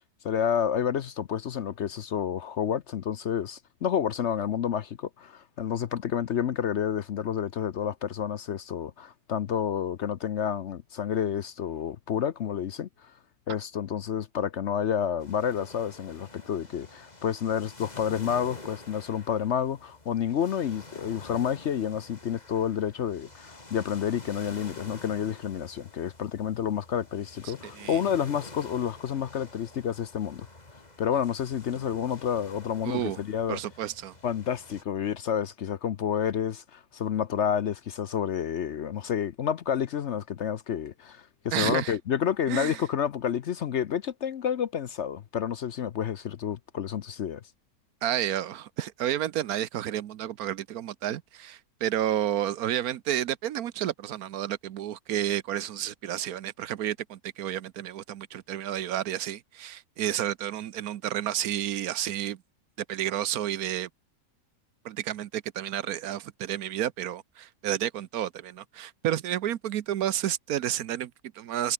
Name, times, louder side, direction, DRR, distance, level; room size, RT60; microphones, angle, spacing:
voice 1, 0.2-13.1 13.5-30.5 31.0-33.6 34.2-47.4, left 8 dB, 55° left, 0.9 m, -29 dB
sound 1, 15.2-34.8, left 2 dB, 25° left, 2.8 m, -48 dB
voice 2, 27.4-28.0 32.8-33.2 33.5-34.1 41.5-42.0 42.5-42.8 48.0-62.4 62.9-63.9 64.8-71.7, right 11 dB, 75° right, 1.2 m, -31 dB
omnidirectional pair, 1.6 m